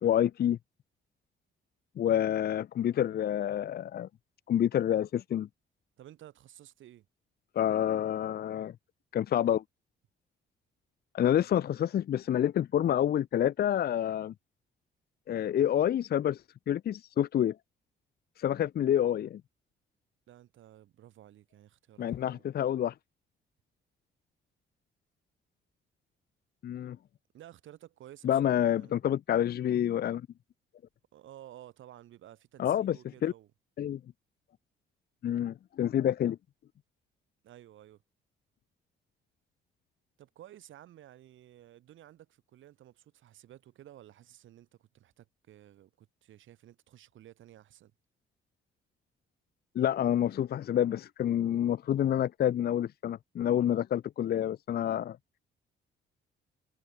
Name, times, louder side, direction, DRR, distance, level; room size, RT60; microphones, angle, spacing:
voice 1, 0.0-0.6 2.0-4.1 4.5-5.5 7.6-8.7 9.1-9.6 11.1-14.3 15.3-16.4 16.7-17.6 18.4-19.4 22.0-22.9 26.6-27.0 28.2-30.2 32.6-33.0 33.2-33.3 33.8-34.0 35.2-36.4 49.7-55.2, left 10 dB, 50° left, 0.6 m, -28 dB
voice 2, 6.0-7.1 20.3-22.5 27.3-29.0 31.1-33.5 37.4-38.0 40.2-47.9, right 12 dB, 75° right, 4.1 m, -54 dB
cardioid pair, 90°, 20 cm